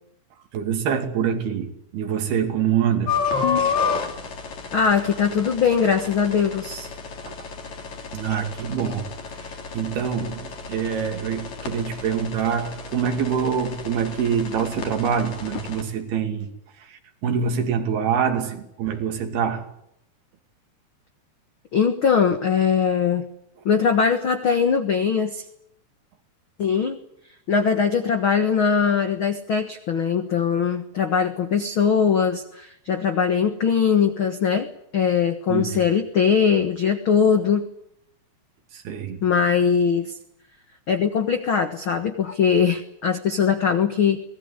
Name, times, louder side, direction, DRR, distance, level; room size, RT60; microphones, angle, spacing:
voice 1, 0.5-3.2 7.2-7.4 8.1-9.1 9.4-16.5 16.8-19.7 35.5-35.8 38.7-39.2, right 7 dB, 70° right, 4.5 m, -25 dB
sound 1, 3.1-15.8, left 6 dB, 50° left, 4.0 m, -31 dB
voice 2, 4.7-6.9 21.7-23.3 23.6-25.4 26.6-27.0 27.5-37.6 39.2-40.2 40.9-44.2, left 6 dB, 70° left, 1.2 m, -21 dB
24.0 x 19.0 x 9.9 m
omnidirectional pair, 4.6 m